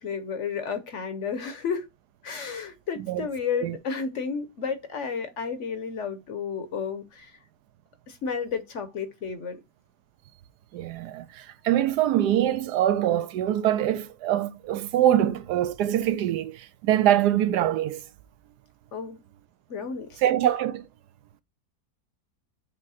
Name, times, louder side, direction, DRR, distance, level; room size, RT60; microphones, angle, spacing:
voice 1, 0.0-1.9 2.2-7.3 8.1-9.6 18.9-19.2 19.7-20.2, left 6 dB, 55° left, 1.0 m, -32 dB
voice 2, 10.7-18.0 20.2-20.9, right 12 dB, 80° right, 1.2 m, -24 dB
7.4 x 3.1 x 4.1 m
omnidirectional pair, 1.8 m